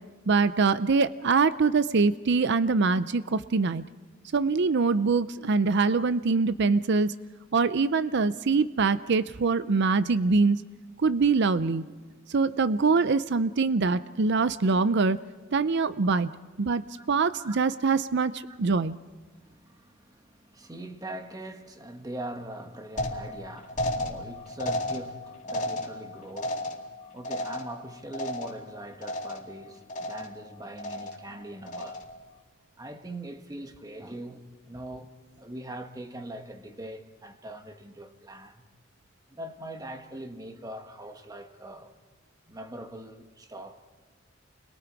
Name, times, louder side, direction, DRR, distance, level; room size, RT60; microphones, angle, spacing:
voice 1, 0.3-3.8 4.3-7.1 7.5-10.6 11.0-11.8 12.3-15.2 15.5-16.3 16.6-16.8 17.1-19.0, right 4 dB, 55° right, 0.6 m, -24 dB
voice 2, 15.8-16.2 16.9-17.1 17.4-17.6 18.5-18.6 19.4-26.7 27.1-32.0 32.8-35.1 35.4-38.6 39.3-41.9 42.5-43.8, right 1 dB, 20° right, 1.4 m, -42 dB
sound 1, 23.0-28.7 29.0-29.6 29.9-30.5 30.8-31.3 31.7-32.2, left 1 dB, 40° left, 2.7 m, -34 dB
29.5 x 22.0 x 4.8 m
head